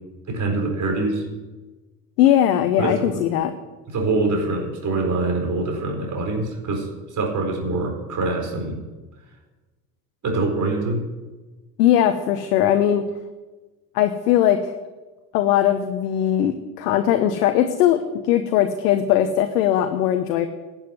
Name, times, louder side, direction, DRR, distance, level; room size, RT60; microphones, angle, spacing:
voice 1, 0.3-1.2 2.8-3.2 3.9-8.8 10.2-11.0, right 3 dB, 40° right, 2 dB, 4.3 m, -24 dB
voice 2, 2.2-3.5 11.8-13.0 13.9-14.7 15.3-18.0 18.3-20.5, left 11 dB, 75° left, 7 dB, 1.1 m, -19 dB
11.5 x 7.6 x 9.6 m, 1.2 s
hypercardioid pair, 80°, 47 cm